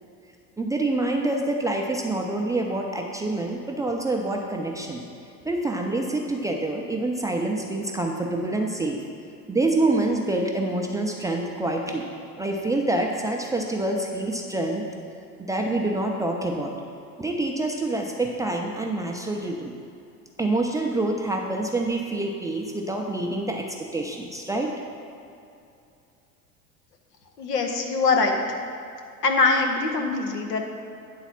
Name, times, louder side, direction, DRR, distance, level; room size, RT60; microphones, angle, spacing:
voice 1, 0.6-5.0 5.4-9.0 9.5-12.1 12.4-14.8 15.4-16.7 17.2-19.7 20.4-24.7, right 2 dB, 5° right, 0 dB, 0.5 m, -26 dB
voice 2, 27.4-28.4 29.2-30.7, left 3 dB, 75° left, 3 dB, 1.1 m, -23 dB
9.3 x 3.9 x 5.7 m, 2.6 s
figure-of-eight pair, 75°, 48 cm